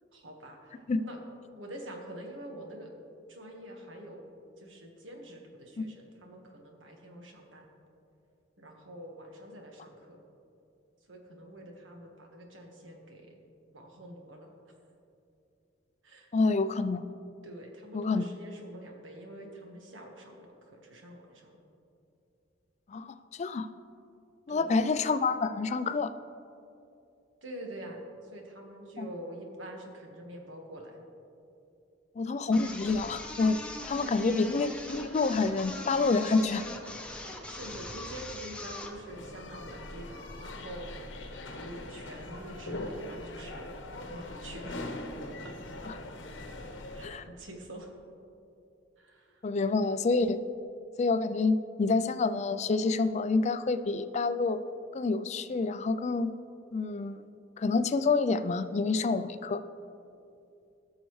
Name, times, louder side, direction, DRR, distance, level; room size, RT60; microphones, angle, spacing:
voice 1, 0.1-1.2 1.6-2.9 3.3-4.3 4.6-7.7 8.6-10.2 11.1-13.4 13.7-14.5 16.0-16.3 17.4-21.6 24.5-25.0 27.4-28.0 28.3-31.0 34.1-34.6 37.4-40.9 41.5-43.7 44.1-44.9 45.4-45.5 46.9-47.9 49.0-49.4, right 1 dB, 90° right, 1 dB, 1.5 m, -46 dB
voice 2, 16.3-17.1 17.9-18.3 22.9-23.7 24.5-26.1 29.0-29.1 32.2-33.6 33.9-36.6 47.0-47.2 49.4-50.4 51.0-54.6 54.9-56.3 56.7-57.3 57.6-59.6, left 3 dB, 35° left, 12 dB, 0.4 m, -28 dB
sound 1, 32.5-39.0, left 1 dB, 5° left, 0.7 m, -41 dB
sound 2, 38.9-47.1, left 1 dB, 80° left, 1.0 m, -41 dB
17.0 x 6.5 x 3.2 m, 2.6 s
head